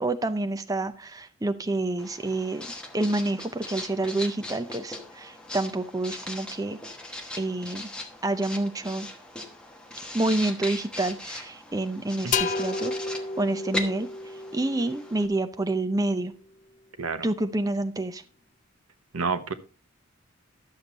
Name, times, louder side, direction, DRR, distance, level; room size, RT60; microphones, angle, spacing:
voice 1, 0.0-6.8 7.4-7.9 8.2-9.1 10.1-14.1 14.5-16.3 17.2-18.2, right 2 dB, 15° right, 0.5 m, -28 dB
Writing, 2.0-15.3, left 1 dB, 5° left, 1.1 m, -39 dB
sound 1, 12.3-16.0, left 4 dB, 35° left, 0.5 m, -32 dB
voice 2, 19.1-19.5, right 4 dB, 85° right, 1.0 m, -29 dB
12.0 x 7.0 x 4.0 m
head